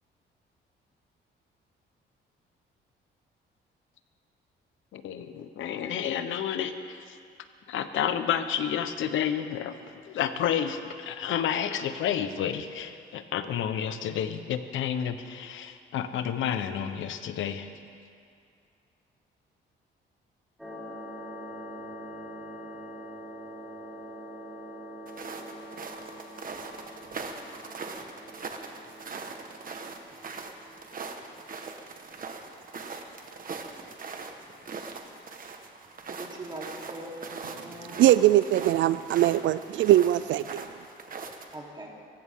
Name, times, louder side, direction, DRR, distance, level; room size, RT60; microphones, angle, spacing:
voice 1, 4.9-7.2 7.7-17.7, left 9 dB, 80° left, 9 dB, 1.1 m, -30 dB
sound 1, 20.6-31.4, equal, ahead, 4.4 m, -44 dB
sound 2, 25.1-41.5, right 4 dB, 45° right, 1.5 m, -41 dB
voice 2, 36.1-38.0 41.5-41.9, right 1 dB, 25° right, -2 dB, 3.6 m, -41 dB
voice 3, 37.8-40.7, right 13 dB, 75° right, 15 dB, 0.4 m, -21 dB
24.5 x 15.0 x 3.8 m, 2.3 s
cardioid pair, 90°, 20 cm